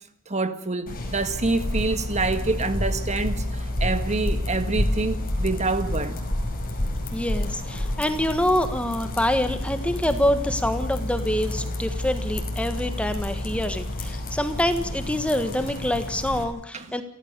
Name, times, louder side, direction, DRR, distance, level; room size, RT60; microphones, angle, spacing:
voice 1, 0.3-6.2 16.7-17.0, right 3 dB, 35° right, 1.7 m, -27 dB
sound 1, 0.9-16.4, left 1 dB, 45° left, 5.3 m, -29 dB
voice 2, 7.1-17.0, left 1 dB, 5° left, 1.4 m, -26 dB
29.0 x 14.0 x 6.7 m
head